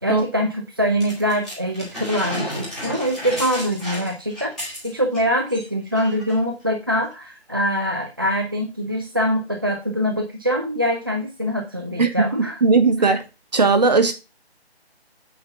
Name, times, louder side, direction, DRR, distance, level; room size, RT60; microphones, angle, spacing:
voice 1, 0.0-4.5 4.8-12.6, equal, 20° right, 0.6 m, -24 dB
sound 1, 1.0-5.2 5.5-5.7 6.0-6.4 7.1-7.2, equal, ahead, 1.4 m, -32 dB
voice 2, 12.6-13.2 13.5-14.1, right 4 dB, 40° right, 1.3 m, -17 dB
8.8 x 4.0 x 5.6 m
figure-of-eight pair, 160°, 32 cm